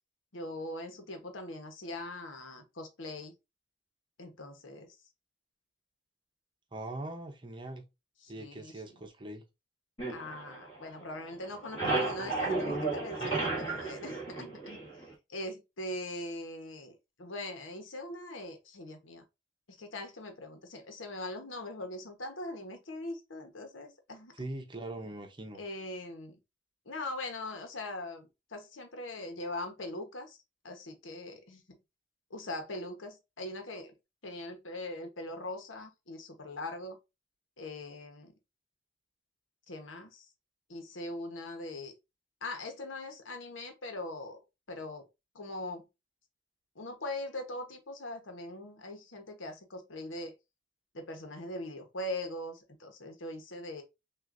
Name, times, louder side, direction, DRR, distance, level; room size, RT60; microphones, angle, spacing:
voice 1, 0.3-3.3 4.2-5.0 8.2-9.0 10.1-14.8 15.3-19.2 19.7-24.3 25.5-26.4 26.8-30.4 30.6-31.8 32.3-33.9 34.2-37.0 37.6-38.3 39.7-40.3 40.7-41.9 42.4-44.4 44.7-45.1 45.3-45.8 46.7-50.3 50.9-53.8, left 1 dB, 85° left, 1.1 m, -41 dB
voice 2, 6.7-7.8 8.3-9.4 13.2-13.6 24.3-25.6, right 2 dB, 25° right, 0.8 m, -41 dB
sound 1, 10.0-11.1 11.4-15.1, right 3 dB, 30° left, 1.9 m, -33 dB
6.1 x 2.6 x 2.5 m
head